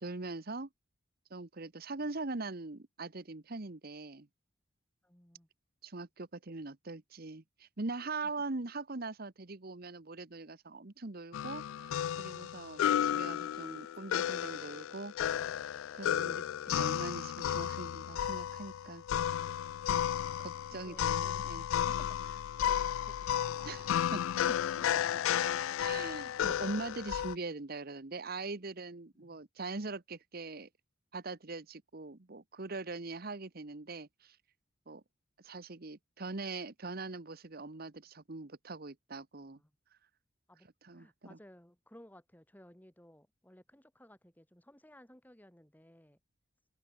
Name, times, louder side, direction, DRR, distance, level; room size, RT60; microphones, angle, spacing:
voice 1, 0.0-0.7 1.3-4.3 5.8-15.1 15.9-16.4 16.7-19.0 19.9-20.0 20.4-21.7 23.6-24.2 24.5-24.6 25.8-30.7 31.1-34.4 34.9-35.0 35.4-39.6 40.8-41.4, right 3 dB, 50° right, 1.1 m, -42 dB
voice 2, 5.0-5.5 8.2-8.3 20.7-23.7 24.8-24.9 29.1-29.4 39.5-39.7 40.5-46.2, equal, 10° left, 2.2 m, -59 dB
sound 1, 11.3-27.3, left 10 dB, 80° left, 0.3 m, -33 dB
open air
head